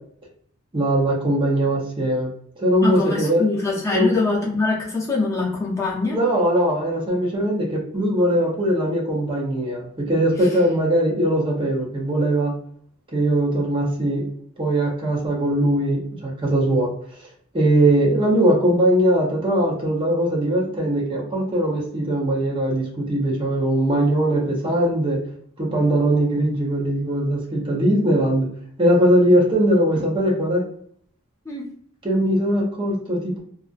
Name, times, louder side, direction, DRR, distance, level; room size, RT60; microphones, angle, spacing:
voice 1, 0.7-2.3 2.6-3.4 3.9-4.2 6.1-12.5 13.1-14.2 14.6-16.9 17.5-25.2 25.6-28.5 28.8-30.7 32.0-33.4, right 1 dB, 25° right, -2 dB, 0.6 m, -20 dB
voice 2, 2.8-6.2 31.5-31.7, left 3 dB, 15° left, -5 dB, 0.7 m, -23 dB
2.4 x 2.1 x 2.4 m, 0.62 s
head